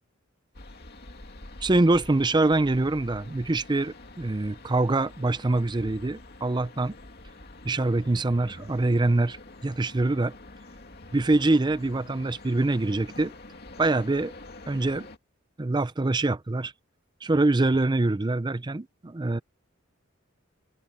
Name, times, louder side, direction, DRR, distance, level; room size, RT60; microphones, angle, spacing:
sound 1, 0.5-15.2, left 2 dB, 50° left, 2.5 m, -46 dB
voice 1, 1.6-6.9 7.6-9.4 9.6-10.3 11.1-13.3 13.8-14.3 14.7-15.1 15.6-16.7 17.2-19.4, right 2 dB, 20° right, 0.5 m, -24 dB
head